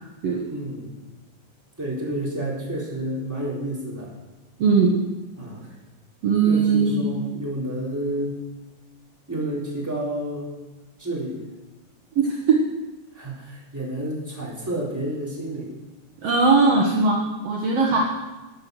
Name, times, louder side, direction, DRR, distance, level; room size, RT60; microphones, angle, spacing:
voice 1, 0.4-1.0 1.8-4.1 5.4-5.6 6.4-8.4 9.3-10.5 11.0-11.4 13.1-15.7, right 1 dB, 5° right, -5 dB, 3.4 m, -30 dB
voice 2, 4.6-5.0 6.2-7.1 12.2-12.6 16.2-18.0, right 4 dB, 60° right, -1 dB, 2.1 m, -19 dB
13.5 x 9.5 x 6.3 m, 1.1 s
omnidirectional pair, 3.6 m